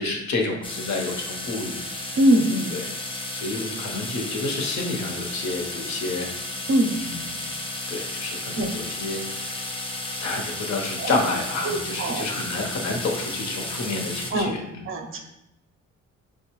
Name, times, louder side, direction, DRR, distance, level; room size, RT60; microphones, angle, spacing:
voice 1, 0.0-2.2 2.7-2.8 3.3-6.3 7.0-7.5 7.9-9.6 10.2-14.6 15.1-15.2, left 3 dB, 60° left, 1 dB, 0.9 m, -29 dB
sound 1, 0.6-14.3, left 2 dB, 15° left, 0.5 m, -33 dB
voice 2, 2.2-2.8 6.7-6.9 8.6-8.7 11.0-11.1 11.6-12.3 14.3-14.5 14.9-15.2, right 1 dB, 40° right, 4 dB, 0.6 m, -22 dB
5.9 x 2.3 x 3.0 m, 0.86 s
cardioid pair, 140°, 32 cm